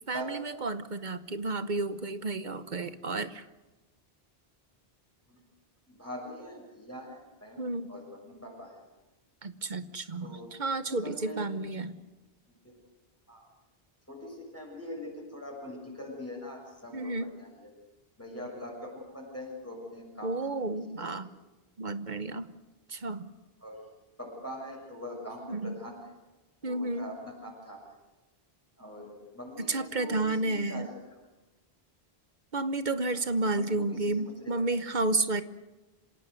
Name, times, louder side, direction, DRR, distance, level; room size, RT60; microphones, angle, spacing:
voice 1, 0.1-3.4 7.6-7.9 9.4-12.0 16.9-17.3 20.2-21.3 21.8-22.5 22.9-23.3 25.5-25.7 26.6-27.1 29.7-30.9 32.5-35.4, right 2 dB, 50° right, 12 dB, 1.1 m, -31 dB
voice 2, 5.9-7.6 7.9-8.8 10.2-10.5 10.9-11.5 12.5-12.8 13.3-13.5 14.1-17.7 18.2-21.3 23.6-23.9 24.2-26.1 26.6-27.8 28.8-31.2 33.1-33.2 33.5-34.6, left 1 dB, 15° left, -3 dB, 6.8 m, -43 dB
27.0 x 17.5 x 8.2 m, 1.1 s
omnidirectional pair, 1.0 m